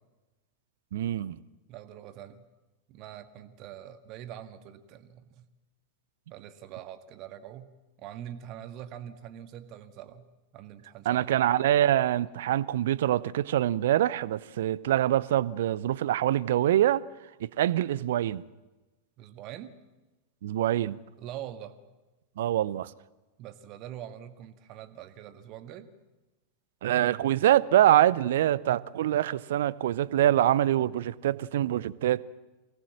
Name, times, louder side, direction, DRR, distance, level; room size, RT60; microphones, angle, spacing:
voice 1, 0.9-1.4 11.1-17.0 17.4-18.4 20.4-21.0 22.4-22.9 26.8-32.2, right 12 dB, 60° right, 0.6 m, -25 dB
voice 2, 1.7-2.4 2.9-5.5 6.3-7.7 8.0-10.3 10.5-11.2 19.2-19.7 21.2-21.7 23.4-25.9, right 11 dB, 40° right, 1.6 m, -44 dB
24.5 x 18.0 x 7.5 m
figure-of-eight pair, 90°, 0 cm